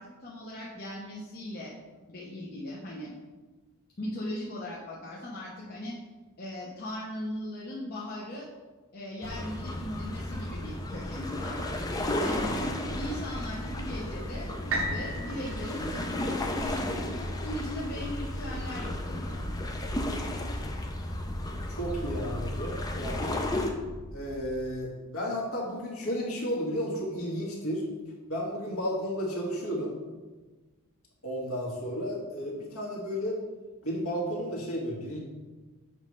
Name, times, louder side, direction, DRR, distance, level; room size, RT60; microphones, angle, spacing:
voice 1, 0.0-1.7 2.1-3.1 4.0-6.0 6.4-8.5 8.9-11.6 12.2-12.6 12.9-19.4, left 1 dB, 45° left, -5 dB, 0.9 m, -38 dB
sound 1, 9.2-23.7, left 1 dB, 15° left, 0.5 m, -34 dB
sound 2, 10.5-24.7, left 1 dB, 10° right, 0.9 m, -45 dB
sound 3, 14.7-18.6 19.2-19.3, right 1 dB, 60° right, 0.8 m, -37 dB
voice 2, 21.7-23.4 24.1-27.9 28.3-30.0 31.2-33.4 33.8-35.2, equal, 70° left, -3 dB, 1.8 m, -33 dB
7.1 x 3.2 x 5.2 m, 1.3 s
head